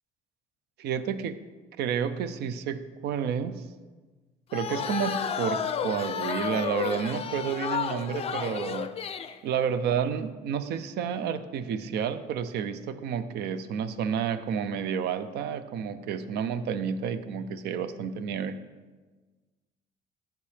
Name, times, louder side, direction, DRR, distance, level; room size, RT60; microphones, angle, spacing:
voice 1, 0.8-1.4 1.8-3.6 4.5-8.9 9.4-18.6, right 7 dB, 75° right, 12 dB, 0.5 m, -30 dB
sound 1, 4.5-9.4, left 7 dB, 35° left, 0.4 m, -31 dB
8.3 x 7.3 x 3.4 m, 1.3 s
cardioid pair, 110°, 17 cm